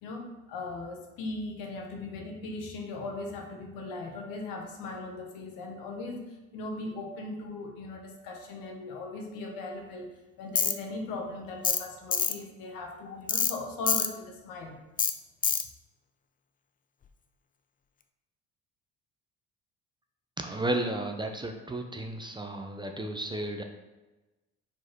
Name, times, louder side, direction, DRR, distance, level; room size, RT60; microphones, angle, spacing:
voice 1, 0.0-14.8, left 2 dB, 70° left, 2 dB, 1.3 m, -39 dB
Tools, 10.6-10.7 11.6-11.8 12.1-12.3 13.3-13.5 13.9-14.1 15.0-15.1 15.4-15.6, left 6 dB, 25° left, 0.5 m, -25 dB
voice 2, 20.4-23.6, right 1 dB, 15° right, 4 dB, 0.7 m, -33 dB
4.8 x 4.2 x 4.6 m, 1.1 s
supercardioid pair, 75°, 35 cm